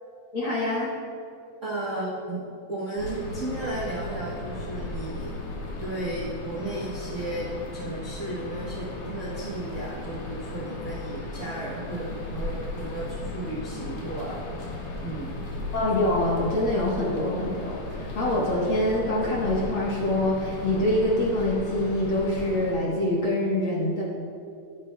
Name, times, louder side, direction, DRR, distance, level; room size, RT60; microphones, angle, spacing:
voice 1, 0.3-0.9 15.7-24.0, left 1 dB, 55° left, -5 dB, 1.6 m, -25 dB
voice 2, 1.6-2.4 2.7-5.3 5.8-14.4 15.0-15.4, right 1 dB, 65° right, -7 dB, 0.7 m, -34 dB
sound 1, 3.0-22.7, left 2 dB, 85° left, 2.8 m, -36 dB
12.5 x 9.5 x 2.2 m, 2.5 s
omnidirectional pair, 3.5 m